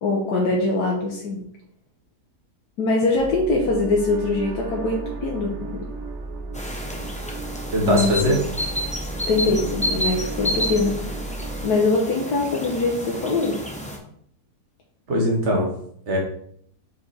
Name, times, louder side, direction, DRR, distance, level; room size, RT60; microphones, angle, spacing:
voice 1, 0.0-1.4 2.8-5.8 7.8-8.3 9.3-11.1 11.6-13.6, left 3 dB, 75° left, -2 dB, 1.5 m, -23 dB
sound 1, 3.1-11.6, right 3 dB, 85° right, 1.5 m, -34 dB
sound 2, 6.5-14.0, equal, 5° left, 0.6 m, -30 dB
voice 2, 7.7-8.4 15.1-15.7 16.1-16.2, equal, 45° right, -1 dB, 1.8 m, -20 dB
5.1 x 4.8 x 4.2 m, 0.65 s
omnidirectional pair, 1.7 m